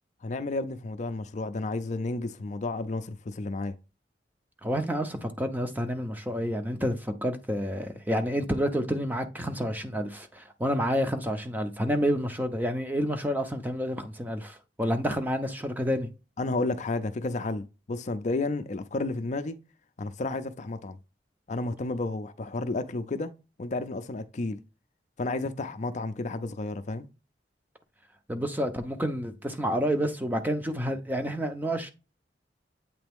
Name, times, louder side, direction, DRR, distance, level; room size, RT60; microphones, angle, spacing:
voice 1, 0.2-3.8 15.1-15.2 16.4-19.6 20.0-21.0 21.5-23.3 23.6-24.6 25.2-27.1, left 2 dB, 40° left, 0.5 m, -32 dB
voice 2, 4.6-16.1 28.3-31.9, equal, 10° right, 0.6 m, -29 dB
8.1 x 3.4 x 3.5 m
head